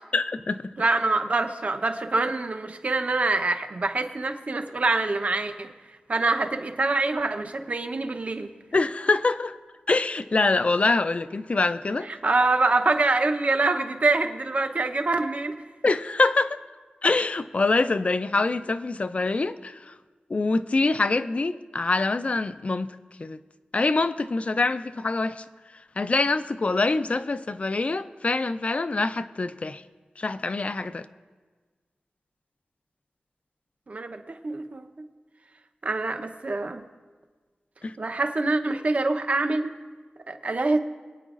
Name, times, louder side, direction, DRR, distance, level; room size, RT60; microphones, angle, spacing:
voice 1, 0.1-0.7 8.7-9.6 9.9-12.1 15.8-16.6 17.0-19.9 20.3-23.4 23.7-25.4 26.0-29.8 30.2-31.1 37.8-38.0, left 3 dB, 45° left, 0.4 m, -25 dB
voice 2, 0.8-5.7 6.1-8.5 12.0-15.5 33.9-34.9 35.8-36.8 38.0-39.7 40.3-40.8, right 3 dB, 50° right, 0.8 m, -25 dB
23.5 x 9.0 x 2.5 m
wide cardioid pair, 85°, 3 cm